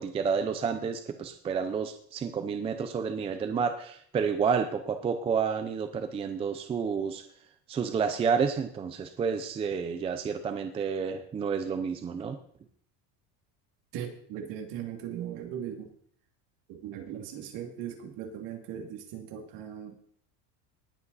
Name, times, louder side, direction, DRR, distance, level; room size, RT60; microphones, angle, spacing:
voice 1, 0.0-7.2 7.7-12.4, right 6 dB, 15° right, 8 dB, 0.5 m, -30 dB
voice 2, 13.9-15.9 16.7-20.0, right 9 dB, 55° right, 3 dB, 2.5 m, -39 dB
19.0 x 8.4 x 4.1 m, 0.62 s
cardioid pair, 175°, 40 cm